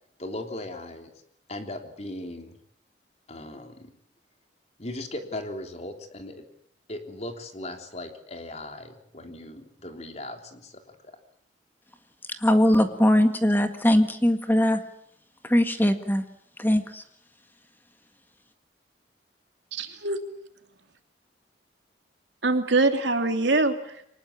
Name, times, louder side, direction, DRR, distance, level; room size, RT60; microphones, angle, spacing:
voice 1, 0.2-1.1 1.5-2.5 3.3-3.9 4.8-6.4 6.9-11.0, left 1 dB, 35° left, 5 dB, 3.4 m, -38 dB
voice 2, 12.4-14.8 15.4-16.3 16.6-17.0, left 1 dB, 10° left, 7 dB, 1.8 m, -21 dB
voice 3, 19.7-20.2 22.4-24.0, right 3 dB, 80° right, 6 dB, 2.9 m, -24 dB
24.0 x 20.0 x 8.8 m, 0.69 s
head